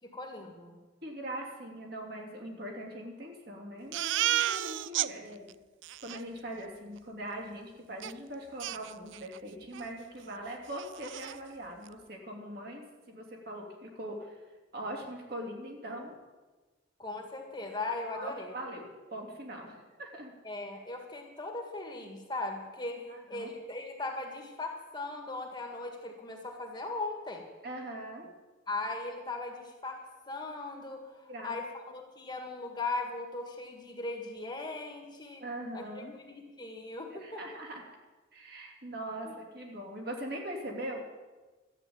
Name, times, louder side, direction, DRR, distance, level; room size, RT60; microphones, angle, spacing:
voice 1, 0.0-0.8 17.0-18.5 20.4-27.5 28.7-35.4 35.7-37.4 39.2-39.3, left 2 dB, 20° left, 2 dB, 1.8 m, -39 dB
voice 2, 1.0-5.5 6.0-14.4 14.7-16.1 18.1-20.3 23.1-23.5 27.6-28.3 31.3-31.5 35.4-36.2 37.1-37.8 38.3-41.0, right 1 dB, 50° right, 0 dB, 2.9 m, -41 dB
Crying sobbing, 3.9-5.1 5.5-5.6 5.8-6.2 8.0-8.1 8.6-9.4 9.7-9.9 10.3-10.4 10.7-11.4, right 13 dB, 65° right, 0.4 m, -32 dB
13.5 x 8.5 x 8.8 m, 1.3 s
head